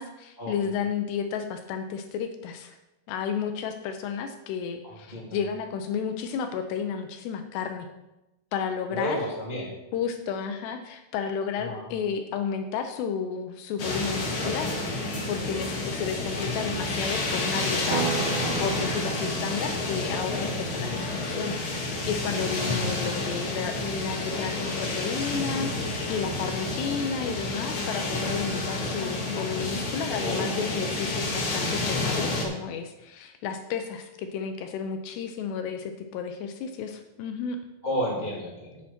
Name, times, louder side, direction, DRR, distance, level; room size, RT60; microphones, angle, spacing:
voice 1, 0.0-2.8 3.1-7.9 8.5-9.2 9.9-18.1 18.6-37.6, left 6 dB, 80° left, 7 dB, 2.7 m, -32 dB
voice 2, 4.8-5.4 8.9-9.7 11.6-11.9 16.3-16.7 20.8-21.0 24.3-24.6 30.2-30.5 37.8-38.8, left 1 dB, 20° right, -5 dB, 1.4 m, -32 dB
sound 1, 13.8-32.4, left 2 dB, 60° left, 1.3 m, -30 dB
sound 2, 17.9-22.0, right 10 dB, 85° right, 2.9 m, -36 dB
10.5 x 8.6 x 4.4 m, 0.95 s
omnidirectional pair, 5.2 m